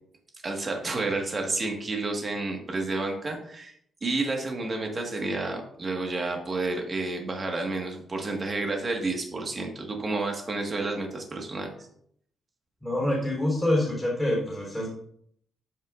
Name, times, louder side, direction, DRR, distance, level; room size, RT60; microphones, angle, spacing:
voice 1, 0.4-3.7 4.0-11.7, right 2 dB, 25° right, 2 dB, 1.5 m, -30 dB
voice 2, 12.8-14.9, left 1 dB, 10° left, -3 dB, 3.5 m, -26 dB
13.5 x 5.5 x 2.5 m, 0.67 s
cardioid pair, 170°, 0 cm